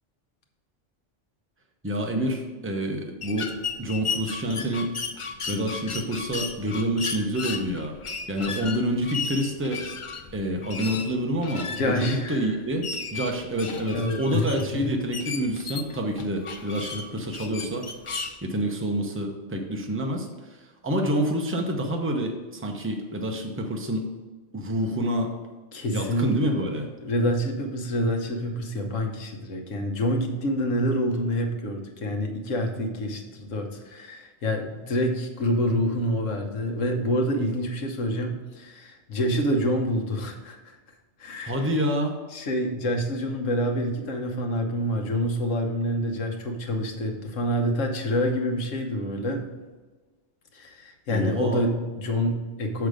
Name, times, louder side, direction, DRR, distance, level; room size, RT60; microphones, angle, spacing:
voice 1, 1.8-4.9 5.5-7.9 8.3-9.8 10.3-12.8 13.1-17.8 18.4-24.1 24.5-25.3 25.9-26.9 41.4-42.1 51.1-51.6, equal, 10° right, 2 dB, 0.7 m, -28 dB
sound 1, 3.2-18.3, left 4 dB, 45° left, 0.4 m, -35 dB
voice 2, 11.7-12.5 13.9-14.9 25.7-26.5 27.0-40.8 41.2-41.6 42.3-49.5 50.5-52.9, equal, 85° left, 3 dB, 1.4 m, -27 dB
6.6 x 5.7 x 5.0 m, 1.3 s
omnidirectional pair, 1.3 m